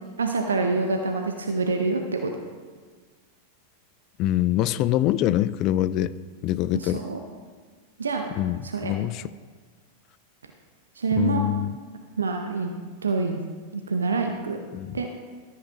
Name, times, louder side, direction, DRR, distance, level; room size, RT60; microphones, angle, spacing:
voice 1, 0.2-2.3 6.7-7.2 8.0-8.3 8.6-8.9 11.0-11.4 12.2-12.7 13.0-13.4 13.7-14.6 14.9-15.1, right 4 dB, 70° right, 4 dB, 0.7 m, -26 dB
voice 2, 4.2-6.2 6.4-7.0 8.4-9.3 11.1-11.7 14.7-15.1, left 13 dB, 40° left, 17 dB, 0.3 m, -24 dB
13.5 x 7.8 x 2.9 m, 1.5 s
figure-of-eight pair, 90°, 0 cm